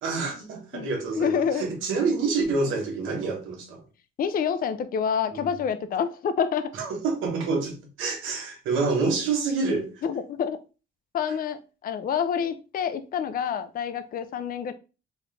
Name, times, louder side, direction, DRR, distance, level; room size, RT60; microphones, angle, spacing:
voice 1, 0.0-3.8 5.3-5.5 6.8-9.9, right 4 dB, 90° right, 1.2 m, -27 dB
voice 2, 0.7-1.6 4.2-6.7 10.0-10.6 11.1-14.7, left 7 dB, 45° left, 0.5 m, -27 dB
4.1 x 2.5 x 3.2 m
cardioid pair, 90°, 20 cm